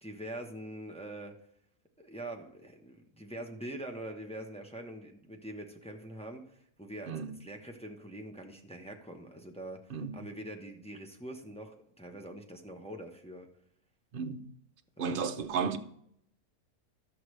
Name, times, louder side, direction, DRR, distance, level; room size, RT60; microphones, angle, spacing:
voice 1, 0.0-1.3 2.0-7.1 7.4-13.5 15.0-15.3, right 1 dB, 5° left, 0.7 m, -44 dB
voice 2, 14.1-14.4 15.0-15.8, right 6 dB, 50° right, 0.7 m, -33 dB
12.5 x 7.7 x 3.2 m
omnidirectional pair, 1.6 m